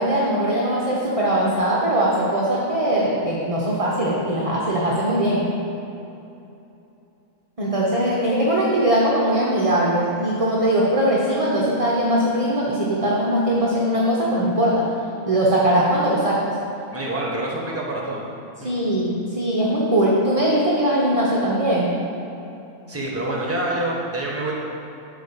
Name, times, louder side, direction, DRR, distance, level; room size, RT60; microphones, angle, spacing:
voice 1, 0.0-5.4 7.6-14.9 15.3-16.4 18.6-21.9, right 1 dB, 30° right, -5 dB, 0.8 m, -20 dB
voice 2, 16.9-18.3 18.6-18.7 22.9-24.5, right 1 dB, 10° right, -3 dB, 1.1 m, -26 dB
8.2 x 4.0 x 6.9 m, 2.8 s
omnidirectional pair, 1.6 m